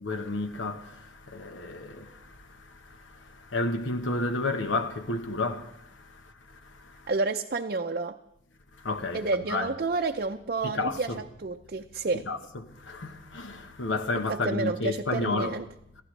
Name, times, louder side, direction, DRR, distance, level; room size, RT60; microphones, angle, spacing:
voice 1, 0.0-7.1 8.8-9.7 10.6-11.2 12.3-15.6, left 2 dB, 85° left, 1.2 m, -32 dB
voice 2, 7.1-8.2 9.1-12.2 14.3-15.6, right 3 dB, 50° right, 0.5 m, -30 dB
28.0 x 15.0 x 3.3 m
head